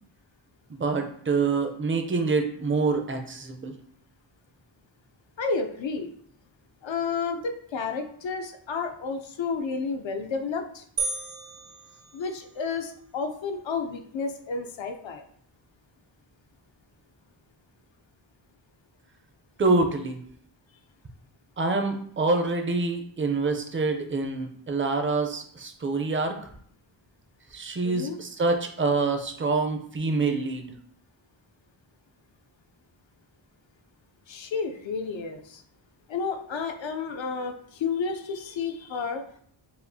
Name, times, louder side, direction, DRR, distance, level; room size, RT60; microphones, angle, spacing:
voice 1, 0.7-3.7 19.6-20.2 21.6-26.5 27.5-30.7, right 3 dB, 25° right, 5 dB, 0.4 m, -26 dB
voice 2, 5.4-6.1 6.8-10.8 12.1-15.2 27.8-28.2 34.3-35.6 36.1-39.2, left 5 dB, 70° left, 5 dB, 0.6 m, -31 dB
sound 1, 11.0-12.8, right 4 dB, 60° right, 0.7 m, -34 dB
6.8 x 2.4 x 2.6 m, 0.62 s
wide cardioid pair, 175°, 47 cm